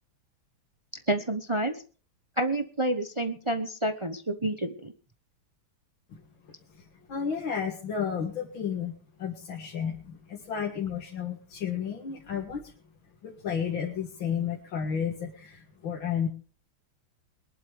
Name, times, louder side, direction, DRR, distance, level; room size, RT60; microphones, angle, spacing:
voice 1, 1.1-1.8 2.4-4.9, right 1 dB, 35° right, 8 dB, 0.4 m, -29 dB
voice 2, 6.1-12.7 13.2-16.3, left 7 dB, 65° left, 0 dB, 2.5 m, -32 dB
22.0 x 11.5 x 3.4 m, 0.38 s
omnidirectional pair, 2.4 m